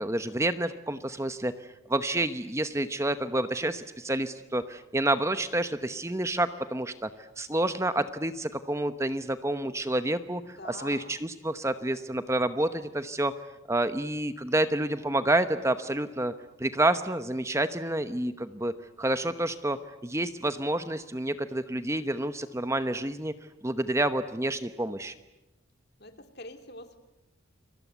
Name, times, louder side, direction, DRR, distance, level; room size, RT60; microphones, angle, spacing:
voice 1, 0.0-13.3 13.7-16.3 16.6-18.7 19.0-23.3 23.6-25.1, right 1 dB, 15° right, 10 dB, 0.9 m, -29 dB
voice 2, 10.4-11.2 26.0-27.0, left 2 dB, 50° left, 7 dB, 2.9 m, -45 dB
29.5 x 24.5 x 8.2 m, 0.94 s
head